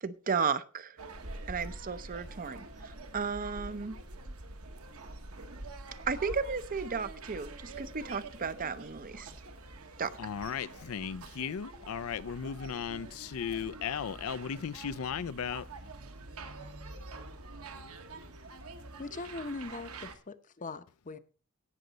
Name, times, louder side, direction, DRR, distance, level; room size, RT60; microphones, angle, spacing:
voice 1, 0.0-1.0 1.5-4.0 6.1-9.3 10.0-10.2, right 5 dB, 40° right, 0.7 m, -34 dB
sound 1, 1.0-20.1, right 2 dB, 85° right, 1.4 m, -46 dB
voice 2, 10.2-15.7, left 7 dB, 75° left, 0.4 m, -36 dB
voice 3, 19.0-21.2, left 3 dB, 35° left, 0.8 m, -41 dB
17.0 x 6.6 x 4.0 m
head